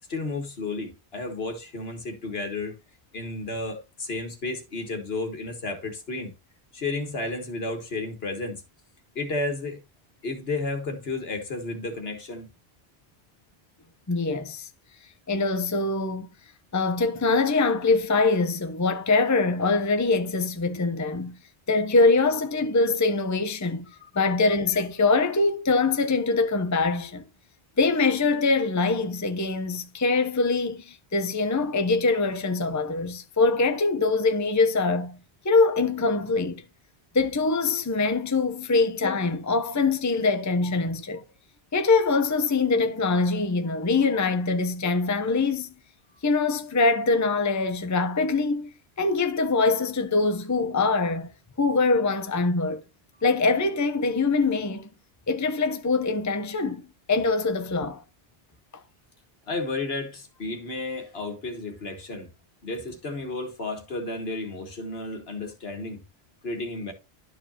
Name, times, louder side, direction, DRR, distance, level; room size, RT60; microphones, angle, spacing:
voice 1, 0.1-2.8 3.1-6.3 6.7-8.6 9.2-9.8 10.2-12.5 24.0-24.1 38.8-38.9 59.5-62.3 62.6-66.0 66.4-66.9, left 3 dB, 70° left, 1.8 m, -32 dB
voice 2, 14.1-14.7 15.3-16.3 16.7-21.3 21.7-23.9 24.2-27.2 27.8-35.2 35.4-36.6 37.1-41.2 41.7-45.7 46.2-48.7 49.0-51.3 51.6-52.8 53.2-54.9 55.3-56.8 57.1-58.0, left 3 dB, 20° left, 0.7 m, -23 dB
12.5 x 4.8 x 2.8 m
omnidirectional pair, 1.1 m